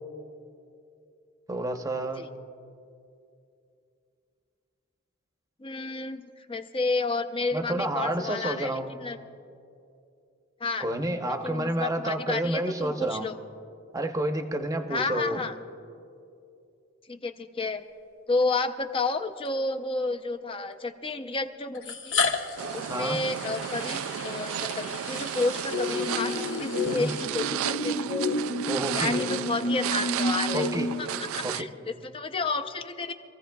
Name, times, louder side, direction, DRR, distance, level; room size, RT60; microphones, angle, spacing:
voice 1, 1.5-2.2 7.5-8.9 10.8-13.3 13.9-15.4 22.9-23.2 26.9-27.1 28.7-29.1 30.5-30.9 31.4-31.7, right 1 dB, 15° right, 5 dB, 0.8 m, -29 dB
voice 2, 5.6-9.2 10.6-10.9 11.2-13.4 14.9-15.6 17.1-17.8 18.3-22.2 22.7-28.1 28.9-30.7 31.0-33.1, left 3 dB, 25° left, 8 dB, 0.6 m, -31 dB
sound 1, 18.3-18.4 19.5-19.6 20.7-20.8 21.7-27.7, left 5 dB, 70° left, 1.1 m, -34 dB
sound 2, 22.6-31.6, right 11 dB, 85° right, 0.3 m, -33 dB
sound 3, 25.7-31.0, left 2 dB, 85° left, 1.1 m, -30 dB
26.0 x 15.0 x 2.3 m, 2.6 s
head